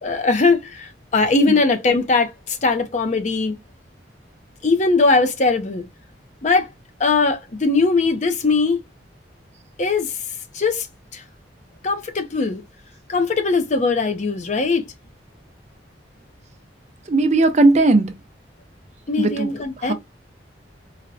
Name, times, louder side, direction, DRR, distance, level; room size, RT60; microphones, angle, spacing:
voice 1, 0.0-3.6 4.6-5.8 6.4-6.7 7.0-8.8 9.8-10.1 10.5-10.9 11.1-11.2 11.8-12.6 13.1-14.9 19.1-19.9, left 3 dB, 40° left, 0.5 m, -20 dB
voice 2, 17.1-18.1 19.2-19.5 19.9-20.0, right 2 dB, 40° right, 0.5 m, -16 dB
4.0 x 2.1 x 2.5 m
head